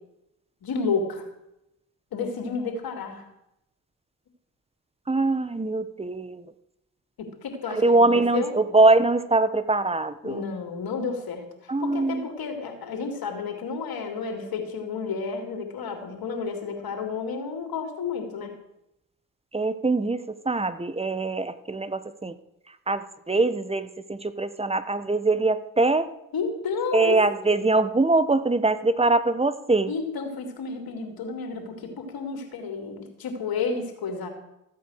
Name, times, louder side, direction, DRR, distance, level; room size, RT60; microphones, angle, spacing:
voice 1, 0.6-1.3 2.1-3.2 7.2-8.5 10.2-18.5 26.3-27.2 29.9-34.3, left 5 dB, 70° left, 4 dB, 3.0 m, -31 dB
voice 2, 5.1-6.4 7.8-10.4 11.7-12.3 19.5-22.3 22.9-26.1 26.9-29.9, right 2 dB, 15° right, 13 dB, 1.2 m, -23 dB
15.0 x 8.3 x 6.6 m, 0.85 s
supercardioid pair, 60°, 38 cm